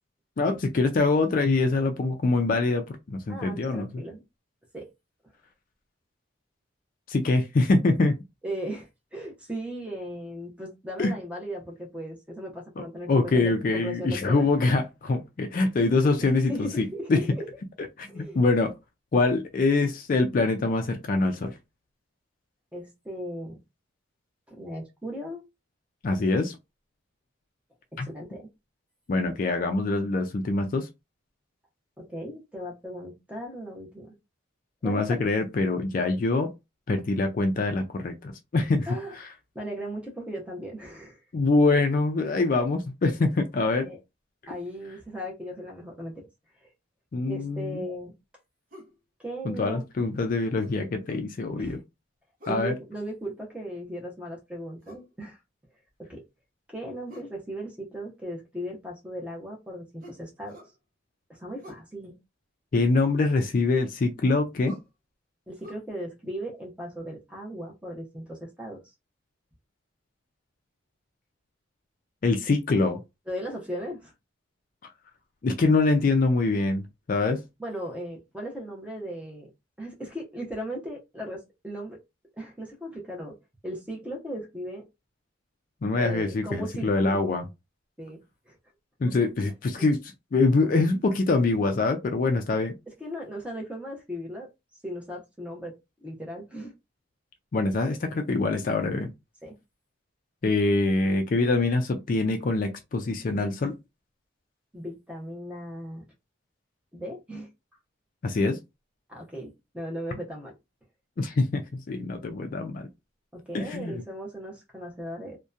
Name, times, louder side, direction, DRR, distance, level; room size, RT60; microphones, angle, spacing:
voice 1, 0.4-3.9 7.1-8.2 11.0-11.1 12.8-17.2 18.0-18.7 19.1-21.5 26.0-26.6 28.0-28.1 29.1-30.9 34.8-36.5 36.9-38.9 39.2-39.3 41.3-43.9 47.1-47.8 49.4-51.8 52.5-52.7 62.7-64.8 72.2-73.0 75.4-76.8 77.1-77.4 85.8-87.4 89.0-90.0 90.3-92.7 97.5-99.1 100.4-103.7 108.2-108.6 111.2-112.9 113.5-114.0, left 3 dB, 40° left, 0.3 m, -24 dB
voice 2, 3.3-4.2 4.7-4.9 8.4-14.5 16.2-17.5 18.1-18.4 22.7-23.6 24.5-25.4 27.9-28.5 32.0-34.1 34.8-35.2 38.9-39.1 39.5-41.2 43.2-43.3 43.8-44.0 44.5-46.3 47.3-48.1 49.2-49.9 51.6-51.8 52.5-55.4 56.0-56.2 56.7-60.6 61.3-62.1 65.5-68.8 73.3-74.1 77.6-79.5 79.8-82.0 82.4-83.4 83.6-84.8 86.0-87.2 88.0-88.2 88.5-88.6 93.0-94.5 94.8-95.8 96.0-96.7 99.4-99.6 104.7-106.0 106.9-107.5 109.1-110.5 113.3-115.4, equal, 5° right, 0.6 m, -37 dB
sound 1, 48.7-49.0 50.6-51.3 52.4-52.7 54.8-55.1 57.1-57.4 60.0-60.8 61.6-61.9 63.8-64.0 64.6-64.9 65.6-65.7, left 1 dB, 40° right, 0.8 m, -48 dB
2.7 x 2.1 x 2.3 m
head